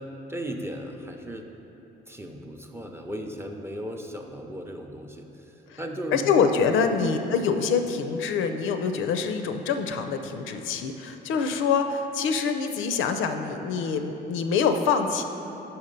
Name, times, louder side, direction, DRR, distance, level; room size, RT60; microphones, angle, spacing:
voice 1, 0.3-1.5 2.1-6.3, equal, 10° right, 3 dB, 0.5 m, -36 dB
voice 2, 6.1-15.2, left 5 dB, 85° left, 7 dB, 0.4 m, -25 dB
5.6 x 4.3 x 5.2 m, 3.0 s
cardioid pair, 90°, 20 cm